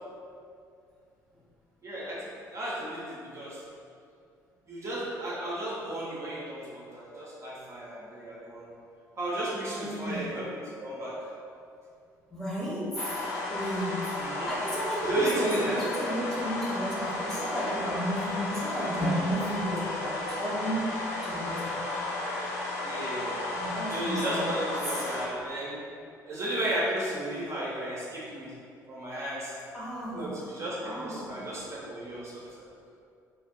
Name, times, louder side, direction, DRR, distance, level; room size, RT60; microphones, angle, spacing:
voice 1, 1.8-3.6 4.7-8.6 9.1-11.3 14.2-14.5 15.0-15.8 22.1-22.5 22.8-23.4 23.9-25.8 26.2-28.5 28.9-29.6 30.1-32.7, right 1 dB, 30° right, -7 dB, 0.7 m, -34 dB
voice 2, 9.8-10.3 12.3-13.0 13.5-14.2 14.5-21.0 21.2-21.8 23.5-24.4 24.9-25.2 29.7-30.4 30.8-31.4, equal, 5° left, -8 dB, 0.9 m, -33 dB
sound 1, 13.0-25.3, left 2 dB, 65° left, 0.4 m, -34 dB
2.4 x 2.1 x 3.7 m, 2.4 s
figure-of-eight pair, 50°, 9 cm